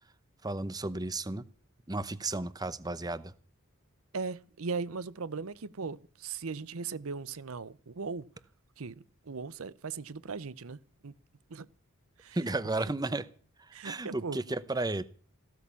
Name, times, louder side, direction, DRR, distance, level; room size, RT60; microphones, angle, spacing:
voice 1, 0.4-1.5 1.9-3.3 12.3-13.3 13.7-15.0, right 2 dB, 20° right, 0.8 m, -33 dB
voice 2, 4.1-8.3 8.8-11.1 11.5-11.7 12.2-12.4 12.8-12.9 13.7-14.4, right 4 dB, 70° right, 0.7 m, -38 dB
15.5 x 13.0 x 7.0 m
head